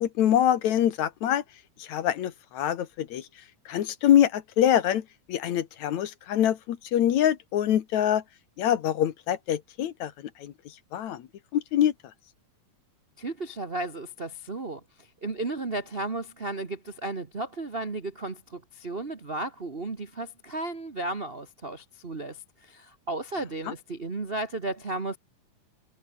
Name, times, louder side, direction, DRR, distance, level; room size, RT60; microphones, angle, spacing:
voice 1, 0.0-1.4 1.8-3.2 3.7-5.0 5.3-8.2 8.6-10.1 10.4-10.5 10.9-11.2 11.5-11.9, left 10 dB, 65° left, 2.5 m, -24 dB
voice 2, 13.2-25.2, right 2 dB, 40° right, 0.8 m, -34 dB
omnidirectional pair, 3.7 m